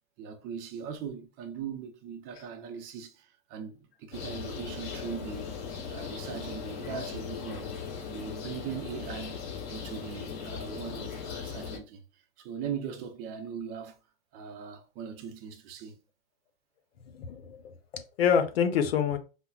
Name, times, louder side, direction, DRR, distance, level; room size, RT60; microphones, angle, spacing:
voice 1, 0.2-5.5 5.9-7.7 8.1-14.0 14.3-16.0, right 7 dB, 30° right, 0.6 m, -40 dB
sound 1, 4.1-11.8, left 6 dB, 45° left, 2.0 m, -38 dB
voice 2, 17.1-17.6 17.9-19.2, left 7 dB, 80° left, 0.8 m, -26 dB
5.4 x 2.1 x 2.3 m
supercardioid pair, 145°, 30 cm